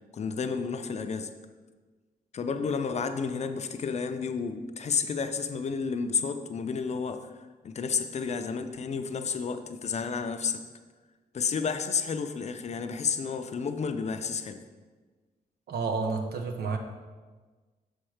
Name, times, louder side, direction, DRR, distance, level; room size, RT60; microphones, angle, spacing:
voice 1, 0.1-1.3 2.3-7.3 7.6-10.6 11.3-14.6, left 5 dB, 45° left, 8 dB, 0.5 m, -31 dB
voice 2, 15.7-16.8, right 4 dB, 85° right, 5 dB, 0.9 m, -30 dB
6.4 x 4.4 x 6.4 m, 1.3 s
wide cardioid pair, 130°, 16 cm